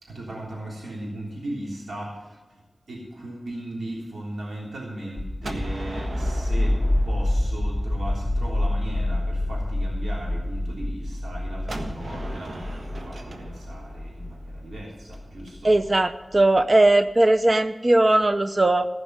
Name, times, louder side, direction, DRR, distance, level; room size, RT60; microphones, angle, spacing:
voice 1, 0.0-2.6 2.9-15.7, right 1 dB, 85° right, -4 dB, 3.5 m, -37 dB
sound 1, 5.2-15.8, left 1 dB, 30° left, 2.4 m, -27 dB
Gunshot gunfire, 5.4-8.3 11.7-15.5, right 1 dB, 70° right, 1.4 m, -38 dB
voice 2, 15.6-18.9, right 2 dB, 40° right, 9 dB, 0.6 m, -19 dB
15.0 x 5.3 x 9.4 m, 1.2 s
cardioid pair, 50°, 0 cm